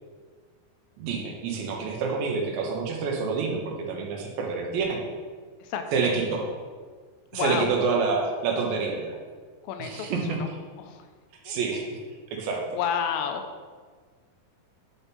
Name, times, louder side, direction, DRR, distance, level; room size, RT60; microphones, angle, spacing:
voice 1, 1.0-5.0 5.9-6.5 7.3-9.1 9.8-10.4 11.4-12.0 12.3-12.6, right 4 dB, 80° right, 1 dB, 2.6 m, -27 dB
voice 2, 7.3-7.7 9.6-10.5 10.8-11.1 11.5-11.6 12.5-13.4, left 8 dB, 80° left, 6 dB, 2.4 m, -31 dB
9.2 x 3.6 x 4.1 m, 1.6 s
omnidirectional pair, 4.2 m